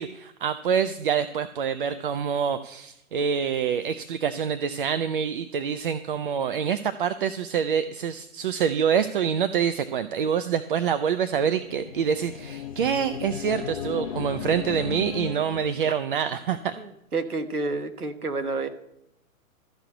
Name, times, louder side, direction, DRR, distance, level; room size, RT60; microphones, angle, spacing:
voice 1, 0.0-16.8, right 7 dB, 40° right, 11 dB, 0.5 m, -26 dB
sound 1, 11.3-15.9, left 8 dB, 25° left, 0.4 m, -36 dB
voice 2, 16.8-18.7, right 3 dB, 90° right, 7 dB, 1.4 m, -30 dB
13.0 x 6.1 x 8.2 m, 0.83 s
figure-of-eight pair, 125°, 44 cm